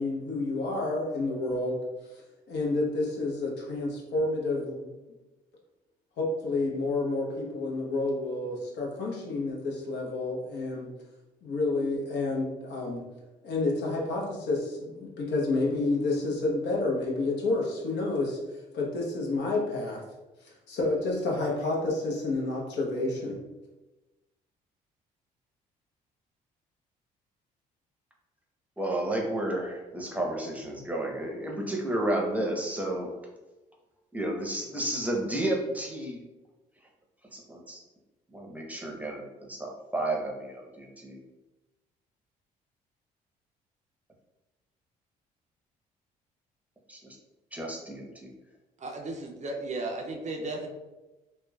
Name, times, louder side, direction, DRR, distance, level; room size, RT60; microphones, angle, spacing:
voice 1, 0.0-1.8 2.5-4.9 6.2-10.9 11.4-13.0 13.4-18.4 18.7-20.0 20.4-23.4, left 2 dB, 65° left, -2 dB, 0.7 m, -29 dB
voice 2, 28.8-33.2 34.1-36.2 37.3-37.8 38.3-41.2 46.9-47.2 47.5-48.3, right 1 dB, 10° right, -1 dB, 0.7 m, -32 dB
voice 3, 48.8-50.7, right 2 dB, 40° right, 2 dB, 0.5 m, -35 dB
3.0 x 2.1 x 2.2 m, 1.1 s
hypercardioid pair, 55°, 19 cm